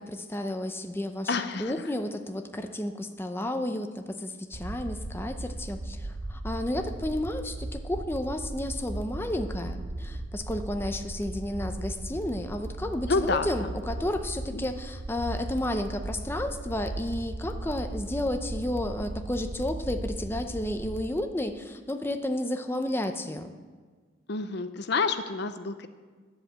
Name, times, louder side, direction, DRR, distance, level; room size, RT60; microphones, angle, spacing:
voice 1, 0.0-1.3 1.6-23.5, left 1 dB, 10° left, 6 dB, 0.6 m, -32 dB
voice 2, 1.3-1.7 13.1-13.7 14.5-14.7 24.3-25.9, left 4 dB, 60° left, 10 dB, 0.6 m, -28 dB
sound 1, 4.5-21.0, right 2 dB, 45° right, 0.6 m, -37 dB
10.0 x 8.1 x 7.4 m, 1.5 s
head